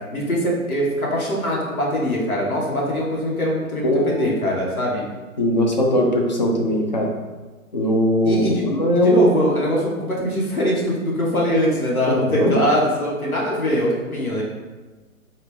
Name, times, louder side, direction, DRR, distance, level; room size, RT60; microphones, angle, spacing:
voice 1, 0.1-5.0 8.2-8.7 8.9-14.4, equal, 80° left, -4 dB, 1.2 m, -22 dB
voice 2, 3.8-4.3 5.4-7.1 7.7-9.4 12.1-12.6, equal, 35° left, 0 dB, 0.4 m, -19 dB
4.2 x 2.3 x 3.1 m, 1.3 s
figure-of-eight pair, 120°, 43 cm